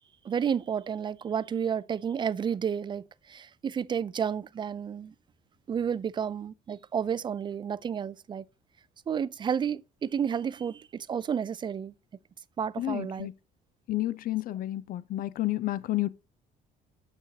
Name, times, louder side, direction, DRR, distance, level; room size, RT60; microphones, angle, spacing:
voice 1, 0.2-5.1 5.7-8.4 9.1-11.9 12.6-13.3, right 7 dB, 25° right, 0.4 m, -31 dB
voice 2, 12.8-13.3 13.9-16.1, left 15 dB, 60° left, 0.6 m, -30 dB
6.6 x 6.4 x 2.8 m
cardioid pair, 110°, 17 cm